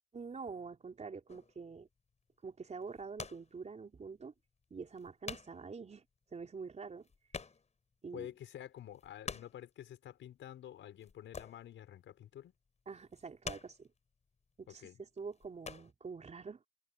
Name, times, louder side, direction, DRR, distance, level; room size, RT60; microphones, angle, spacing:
voice 1, 0.1-1.9 2.4-4.3 4.7-6.0 6.3-7.1 8.0-8.3 12.9-13.9 14.6-16.6, right 5 dB, 35° right, 4.0 m, -46 dB
sound 1, 1.3-1.6 2.7-3.6 3.9-4.0 4.6-4.7 4.9-5.7 6.0-6.1 6.3-6.4 6.7-7.9 8.3-8.4 8.8-9.7 11.0-11.8 12.1-12.4 13.0-14.0 14.6-14.9 15.2-15.9, left 5 dB, 35° left, 6.0 m, -46 dB
voice 2, 8.1-12.5 14.7-15.0, left 11 dB, 75° left, 5.3 m, -49 dB
open air
cardioid pair, 90°, 20 cm